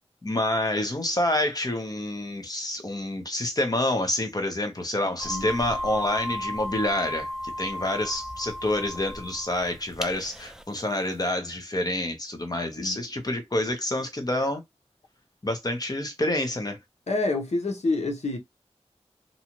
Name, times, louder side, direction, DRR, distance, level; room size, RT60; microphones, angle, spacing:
voice 1, 0.2-14.6 15.4-16.8, left 1 dB, 35° left, 0.8 m, -28 dB
sound 1, 5.2-10.6, left 1 dB, 5° right, 0.3 m, -35 dB
voice 2, 17.1-18.4, left 2 dB, 70° left, 1.0 m, -27 dB
2.7 x 2.3 x 2.9 m
wide cardioid pair, 80°, 12 cm